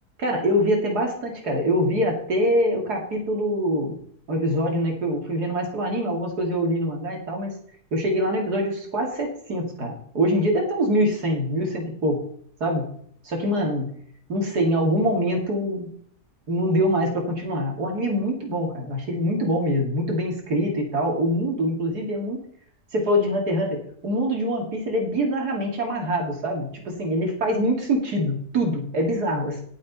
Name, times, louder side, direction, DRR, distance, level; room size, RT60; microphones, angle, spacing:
voice 1, 0.2-4.0 4.3-7.5 7.9-12.2 12.6-12.8 13.2-13.8 14.3-15.9 16.5-22.4 22.9-23.8 24.0-29.6, equal, 80° right, 0 dB, 3.2 m, -24 dB
18.5 x 7.6 x 4.2 m, 0.62 s
omnidirectional pair, 1.7 m